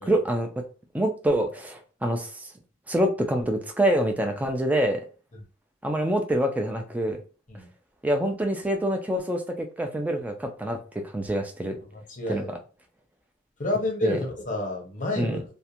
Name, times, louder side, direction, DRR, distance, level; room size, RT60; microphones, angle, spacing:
voice 1, 0.1-0.5 0.9-2.5 2.9-5.0 5.8-7.2 8.0-11.8 12.3-12.4 14.0-14.2 15.2-15.4, right 1 dB, 5° right, 0.3 m, -26 dB
voice 2, 11.9-12.6 13.6-15.4, left 2 dB, 40° left, 0.6 m, -30 dB
2.4 x 2.1 x 2.7 m
head